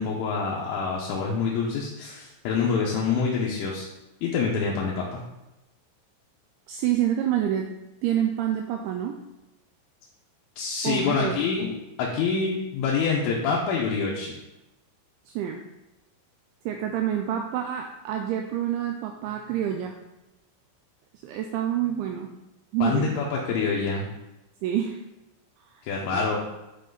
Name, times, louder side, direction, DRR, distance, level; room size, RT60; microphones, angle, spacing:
voice 1, 0.0-3.9 4.2-5.2 10.6-11.7 12.0-14.4 22.8-24.1 25.8-26.4, left 5 dB, 75° left, -3 dB, 3.2 m, -26 dB
voice 2, 6.7-7.7 8.0-9.2 10.8-11.4 15.3-15.6 16.7-19.9 21.2-22.3 22.7-23.1 24.6-25.0 25.7-25.8 26.1-26.3, right 10 dB, 90° right, 3 dB, 2.6 m, -27 dB
11.0 x 4.3 x 4.0 m, 0.97 s
omnidirectional pair, 6.0 m